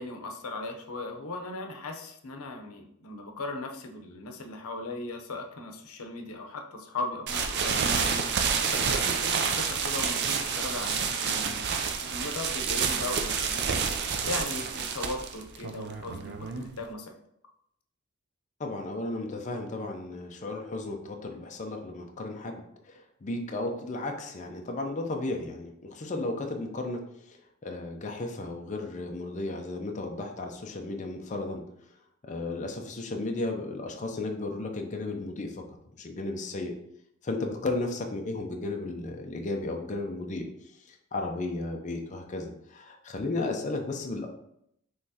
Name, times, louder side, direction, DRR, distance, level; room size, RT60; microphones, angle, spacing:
voice 1, 0.0-13.9 14.2-17.1, left 2 dB, 85° left, 4 dB, 0.7 m, -38 dB
sound 1, 7.3-16.9, right 6 dB, 50° right, 0.4 m, -29 dB
voice 2, 18.6-27.0 27.6-31.6 32.2-35.5 36.0-36.7 37.2-40.5 40.9-44.3, left 2 dB, 35° left, 3 dB, 0.5 m, -34 dB
5.6 x 3.1 x 2.8 m, 0.75 s
head